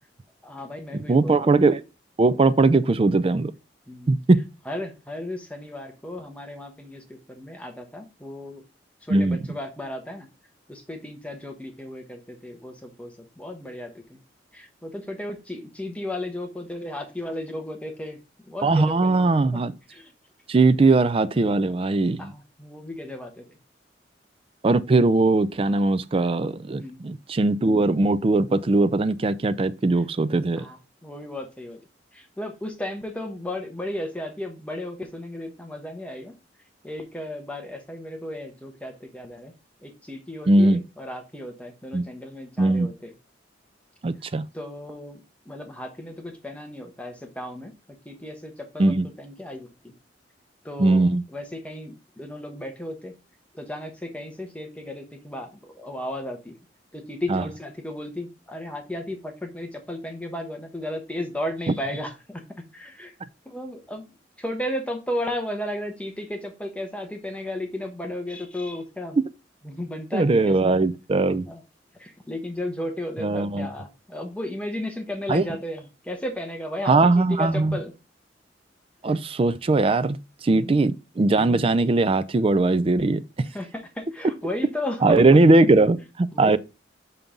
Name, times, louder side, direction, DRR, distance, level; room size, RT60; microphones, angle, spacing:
voice 1, 0.4-1.5 3.9-4.2 4.7-8.6 9.0-10.3 10.7-14.2 14.5-18.2 18.4-19.6 19.9-20.1 22.2-23.4 26.8-27.0 30.6-31.8 32.1-36.3 36.8-39.5 39.8-43.1 44.5-45.2 45.5-47.7 48.0-49.9 50.6-51.1 51.3-53.1 53.5-56.6 56.9-62.4 62.7-63.1 63.5-64.0 64.4-69.2 69.6-70.5 71.5-71.6 72.0-77.9 80.5-80.7 83.5-85.2 86.3-86.6, left 1 dB, 5° left, 1.0 m, -34 dB
voice 2, 1.1-1.8 2.2-3.5 4.1-4.4 9.1-9.4 18.6-19.7 20.5-22.3 24.6-30.7 40.5-40.8 41.9-42.0 42.6-42.9 44.0-44.4 48.8-49.1 50.8-51.2 57.3-57.4 70.1-71.5 73.2-73.7 75.3-75.4 76.8-77.8 79.0-80.2 80.4-83.5 85.0-86.6, right 2 dB, 30° right, 0.4 m, -20 dB
5.9 x 5.3 x 3.7 m
head